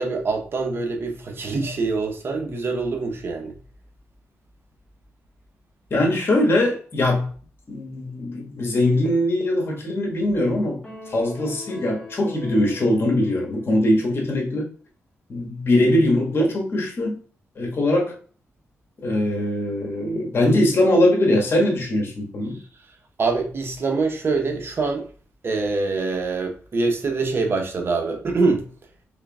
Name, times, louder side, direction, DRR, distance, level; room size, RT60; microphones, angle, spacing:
voice 1, 0.0-3.5 23.2-25.1 25.4-28.7, right 3 dB, 50° right, 1.0 m, -24 dB
voice 2, 5.9-7.3 7.7-14.7 15.3-17.2 17.5-18.1 19.0-22.6, left 1 dB, 50° left, 1.6 m, -21 dB
sound 1, 10.8-14.3, left 2 dB, 15° left, 1.5 m, -42 dB
3.7 x 3.5 x 2.3 m
cardioid pair, 85°, 5 cm